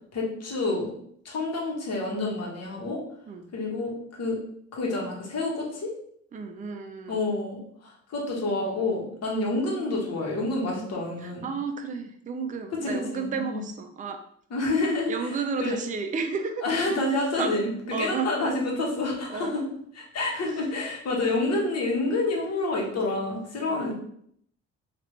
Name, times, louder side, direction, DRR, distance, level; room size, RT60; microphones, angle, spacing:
voice 1, 0.1-0.9 1.2-3.0 3.5-4.4 4.7-5.9 7.1-11.5 12.8-13.6 14.5-15.3 15.6-15.8 16.6-19.6 20.0-23.9, left 2 dB, 60° left, -2 dB, 1.1 m, -28 dB
voice 2, 6.3-7.2 11.2-14.2 15.1-16.7 17.4-17.6 17.9-18.3 19.3-19.6 23.6-23.9, right 5 dB, 30° right, 6 dB, 0.4 m, -32 dB
3.2 x 2.4 x 3.1 m, 0.67 s
cardioid pair, 90°, 29 cm